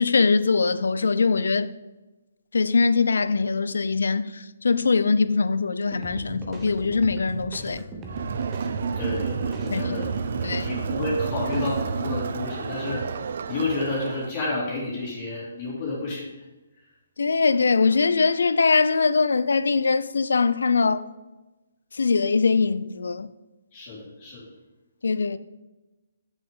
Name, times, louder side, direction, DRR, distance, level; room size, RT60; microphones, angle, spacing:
voice 1, 0.0-1.7 2.5-4.3 4.6-7.8 9.7-10.0 10.4-10.7 17.2-21.0 22.0-23.3 25.0-25.4, left 4 dB, 80° left, 0.4 m, -22 dB
sound 1, 5.9-11.9, right 1 dB, 20° right, 0.9 m, -39 dB
Crowd, 8.1-14.4, right 6 dB, 60° right, 0.3 m, -30 dB
voice 2, 9.0-13.0 13.5-16.3 23.7-24.5, left 2 dB, 35° left, 2.4 m, -30 dB
7.9 x 6.0 x 3.7 m
hypercardioid pair, 155°, 0 cm